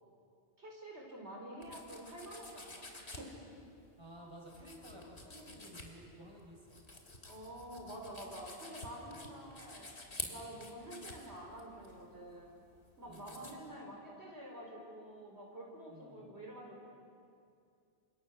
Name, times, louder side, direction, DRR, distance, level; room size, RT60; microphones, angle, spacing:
voice 1, 0.6-3.3 7.3-9.9 10.3-12.6 13.0-16.9, right 1 dB, 80° right, -1 dB, 5.2 m, -48 dB
sound 1, 1.6-13.5, left 2 dB, 75° left, 3.3 m, -50 dB
voice 2, 4.0-6.8 9.1-9.5 10.4-10.7 13.1-13.5 15.9-16.3, equal, 25° right, -1 dB, 5.9 m, -54 dB
30.0 x 26.0 x 6.5 m, 2.5 s
omnidirectional pair, 1.1 m